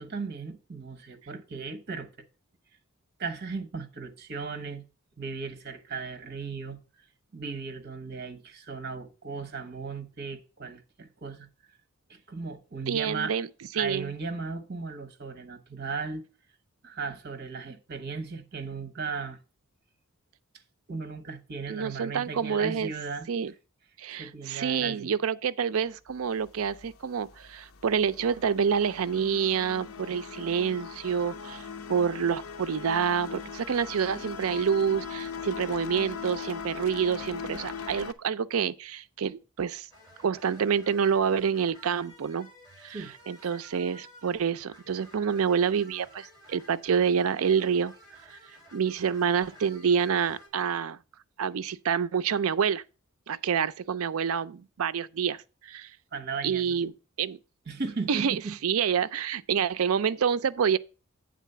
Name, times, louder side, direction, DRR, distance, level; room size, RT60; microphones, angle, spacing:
voice 1, 0.0-2.1 3.2-4.8 5.2-6.8 7.3-11.5 12.1-13.4 13.7-16.2 16.8-19.4 20.9-23.3 24.2-25.1 42.9-43.1 56.1-56.8 57.7-58.5, right 4 dB, 50° right, 1.1 m, -36 dB
voice 2, 12.9-13.5 13.7-14.1 21.7-22.9 23.3-23.5 24.0-39.9 40.2-42.5 42.8-47.9 48.3-48.4 48.7-51.0 51.4-52.8 53.3-55.9 56.4-56.9 57.2-57.4 58.1-60.8, right 7 dB, 70° right, 0.4 m, -27 dB
sound 1, 26.1-38.1, left 6 dB, 80° left, 0.6 m, -40 dB
sound 2, 39.9-50.5, equal, 15° left, 4.1 m, -53 dB
8.4 x 3.9 x 6.7 m
head